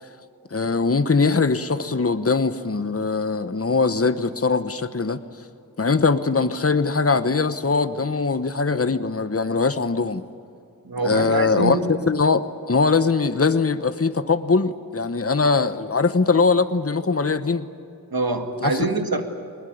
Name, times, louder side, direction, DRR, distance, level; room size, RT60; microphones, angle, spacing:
voice 1, 0.5-5.2 5.8-10.3 11.0-17.7 18.6-18.8, left 4 dB, 40° left, 11 dB, 1.0 m, -21 dB
voice 2, 10.8-11.9 18.1-19.2, right 3 dB, 75° right, 5 dB, 2.1 m, -24 dB
21.5 x 20.5 x 9.5 m, 2.5 s
wide cardioid pair, 45°, 36 cm